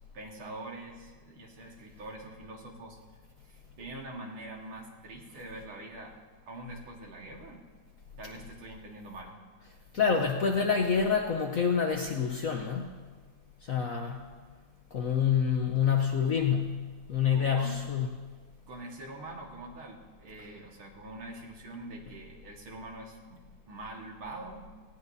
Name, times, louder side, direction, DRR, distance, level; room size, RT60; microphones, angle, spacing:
voice 1, 0.1-3.0 3.5-6.2 6.5-7.6 8.2-9.4 17.3-17.8 18.7-24.7, right 2 dB, 80° right, 0 dB, 2.5 m, -44 dB
voice 2, 9.9-12.9 13.6-14.2 14.9-18.1, left 7 dB, 60° left, 2 dB, 0.9 m, -27 dB
18.0 x 16.0 x 2.7 m, 1.4 s
omnidirectional pair, 2.3 m